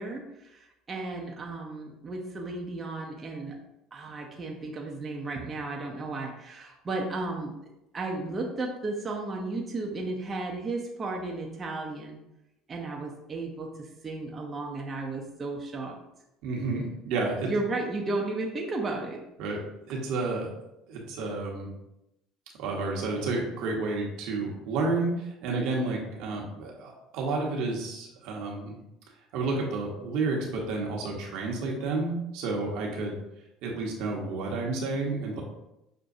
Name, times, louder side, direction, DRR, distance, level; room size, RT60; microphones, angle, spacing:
voice 1, 0.0-3.6 3.9-7.6 7.9-12.2 12.7-16.0 17.4-19.2, right 2 dB, 30° right, 0 dB, 0.6 m, -34 dB
voice 2, 16.4-17.5 19.4-20.5 20.9-21.7 22.6-28.7 29.3-33.2 33.6-35.4, right 3 dB, 70° right, -1 dB, 1.0 m, -30 dB
6.1 x 2.2 x 2.6 m, 0.88 s
supercardioid pair, 85°, 0 cm